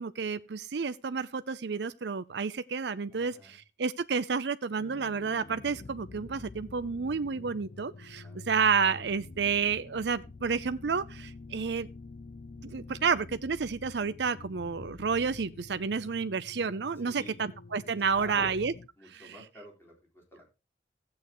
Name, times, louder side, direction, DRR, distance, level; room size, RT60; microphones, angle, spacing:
voice 1, 0.0-11.9 12.6-18.7 19.1-19.2, right 5 dB, 70° right, 0.6 m, -30 dB
voice 2, 3.1-3.6 8.2-8.5 17.1-17.5 18.2-18.6 19.0-20.5, right 1 dB, 15° left, 4.4 m, -49 dB
sound 1, 4.8-18.9, left 3 dB, 45° left, 0.5 m, -47 dB
15.0 x 8.7 x 3.1 m
head